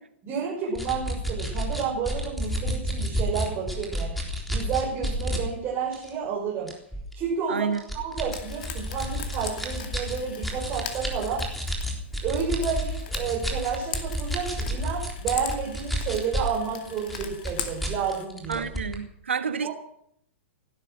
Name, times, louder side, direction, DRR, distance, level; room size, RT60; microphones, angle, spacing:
voice 1, 0.2-4.2 4.5-6.7 7.1-11.5 12.2-18.7 19.6-19.7, right 6 dB, 30° right, -4 dB, 6.1 m, -30 dB
sound 1, 0.8-5.4 5.9-6.1 6.7-7.1 7.8-16.6 16.9-19.0, equal, ahead, 3.7 m, -30 dB
voice 2, 7.5-7.8 18.5-19.7, right 6 dB, 70° right, 11 dB, 1.4 m, -29 dB
Frying (food), 8.3-18.2, left 8 dB, 45° left, 2.5 m, -40 dB
17.0 x 12.0 x 6.5 m, 0.70 s
figure-of-eight pair, 105°, 7 cm